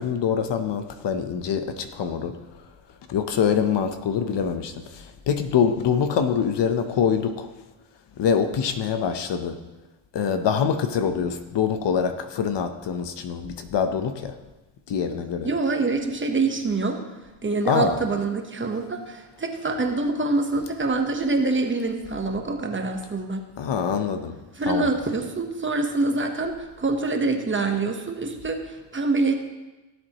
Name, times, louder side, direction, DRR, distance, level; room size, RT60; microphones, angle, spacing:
voice 1, 0.0-2.3 3.1-7.5 8.2-9.6 10.1-14.3 14.9-15.5 17.6-18.0 23.6-24.3 24.7-24.9, left 7 dB, 60° left, 8 dB, 0.9 m, -24 dB
voice 2, 15.4-17.0 17.4-23.4 24.6-26.5 26.8-29.3, right 3 dB, 25° right, 4 dB, 1.1 m, -25 dB
16.5 x 7.8 x 3.0 m, 1.1 s
cardioid pair, 100°, 49 cm